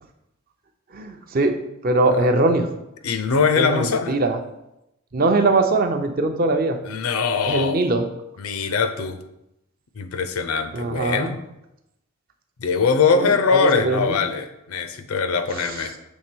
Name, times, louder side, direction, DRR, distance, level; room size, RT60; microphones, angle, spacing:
voice 1, 0.9-1.6 1.8-2.7 3.6-4.4 5.1-6.8 7.5-8.1 10.7-11.3 13.1-14.2 15.6-15.8, right 2 dB, 40° right, 6 dB, 0.5 m, -21 dB
voice 2, 3.0-4.1 6.9-7.9 8.4-9.2 10.0-11.4 12.6-15.9, left 5 dB, 80° left, 9 dB, 0.6 m, -22 dB
6.3 x 3.4 x 4.4 m, 0.87 s
head